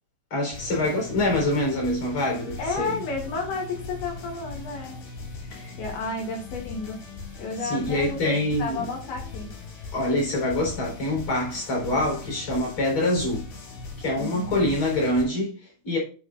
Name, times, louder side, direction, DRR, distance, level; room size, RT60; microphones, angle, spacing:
voice 1, 0.3-3.0 5.5-5.7 7.6-8.9 9.9-13.4 14.0-16.0, left 1 dB, 35° left, 4.5 m, -25 dB
sound 1, 0.5-15.2, left 3 dB, 85° left, 4.6 m, -39 dB
voice 2, 2.6-5.0 5.4-7.0 7.4-8.3 8.6-9.5 14.2-14.6, left 3 dB, 70° left, 3.9 m, -32 dB
10.0 x 4.9 x 2.5 m
omnidirectional pair, 4.7 m